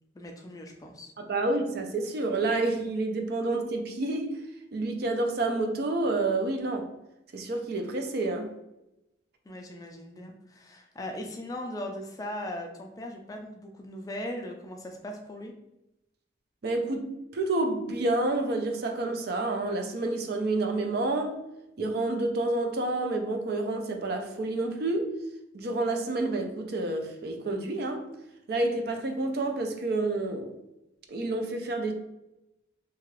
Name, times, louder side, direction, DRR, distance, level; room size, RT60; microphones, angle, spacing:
voice 1, 0.1-1.1 9.5-15.5, left 1 dB, 20° left, 0.3 m, -39 dB
voice 2, 1.2-4.4 4.7-6.9 7.3-8.5 16.6-21.4 21.8-25.1 25.5-28.1 28.5-30.5 31.1-31.9, right 2 dB, 55° right, 0.4 m, -29 dB
2.8 x 2.4 x 3.0 m
head